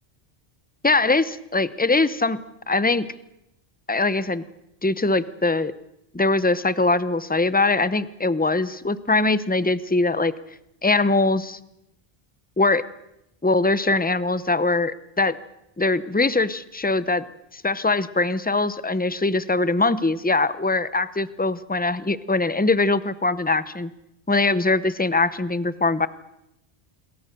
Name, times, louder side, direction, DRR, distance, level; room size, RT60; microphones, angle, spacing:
voice 1, 0.8-2.4 2.7-3.1 3.9-4.4 4.8-5.7 6.1-10.3 10.8-11.6 12.6-12.8 13.4-15.4 15.8-17.2 17.5-23.9 24.3-26.1, left 3 dB, 10° left, 15 dB, 0.7 m, -22 dB
27.5 x 22.0 x 6.8 m, 0.84 s
omnidirectional pair, 1.0 m